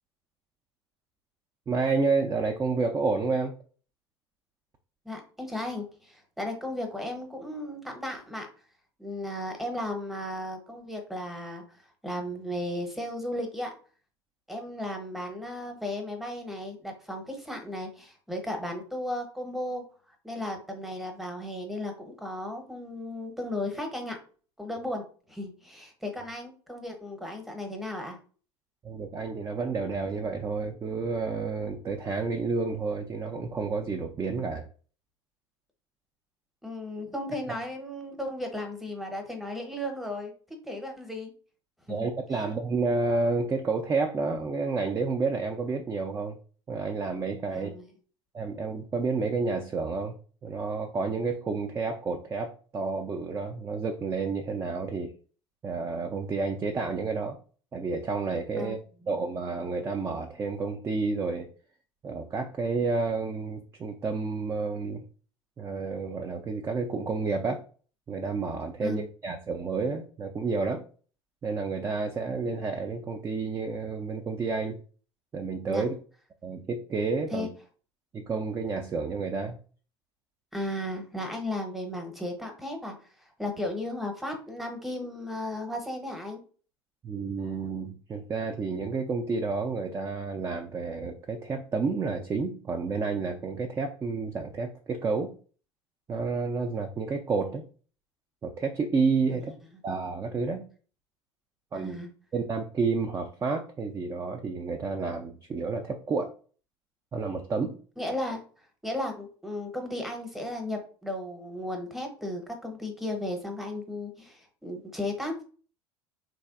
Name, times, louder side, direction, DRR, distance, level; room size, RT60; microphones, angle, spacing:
voice 1, 1.7-3.6 28.8-34.7 41.9-46.4 46.7-47.7 48.3-50.2 50.4-55.1 55.6-57.4 57.7-58.8 59.1-61.5 62.0-65.1 65.6-67.6 68.1-70.8 71.4-74.8 75.3-75.9 76.4-77.5 78.1-79.6 87.0-95.3 96.1-97.6 98.4-99.5 99.8-100.6 101.7-102.0 102.3-106.3 107.1-107.7, right 4 dB, 20° right, 5 dB, 0.3 m, -30 dB
voice 2, 5.0-8.5 9.0-13.7 14.5-19.8 20.2-24.2 24.6-28.2 36.6-40.3 40.6-41.3 41.9-42.0 42.4-42.5 47.5-47.9 58.6-58.8 68.8-69.0 75.7-75.8 77.3-77.5 80.5-82.9 83.4-86.4 99.3-99.4 101.7-102.1 108.0-108.4 108.8-115.4, left 1 dB, ahead, 4 dB, 0.8 m, -35 dB
3.2 x 2.4 x 2.4 m, 0.41 s
figure-of-eight pair, 70°, 15 cm